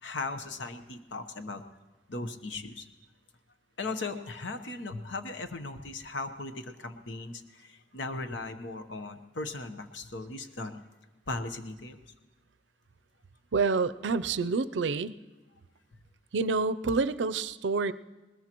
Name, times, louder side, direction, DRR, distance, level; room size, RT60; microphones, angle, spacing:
voice 1, 0.0-1.6 2.1-2.9 3.8-10.8 11.3-12.0, left 3 dB, 85° left, 9 dB, 1.0 m, -38 dB
voice 2, 13.5-15.1 16.3-17.9, right 4 dB, 80° right, 14 dB, 0.5 m, -28 dB
20.0 x 20.0 x 3.0 m, 1.3 s
head